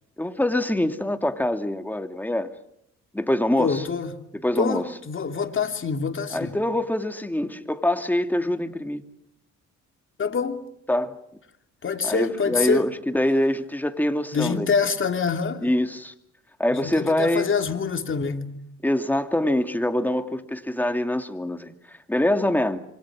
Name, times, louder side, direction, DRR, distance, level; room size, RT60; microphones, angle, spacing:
voice 1, 0.2-2.5 3.1-3.8 4.4-4.8 6.3-9.0 10.9-11.1 12.0-14.7 15.6-16.1 16.6-17.5 18.8-22.8, left 1 dB, 5° left, 2.4 m, -24 dB
voice 2, 3.6-4.2 4.6-6.6 10.2-10.6 11.8-12.9 14.3-15.7 16.7-18.5, left 5 dB, 40° left, 3.0 m, -26 dB
27.0 x 25.0 x 6.3 m
cardioid pair, 90°, 30 cm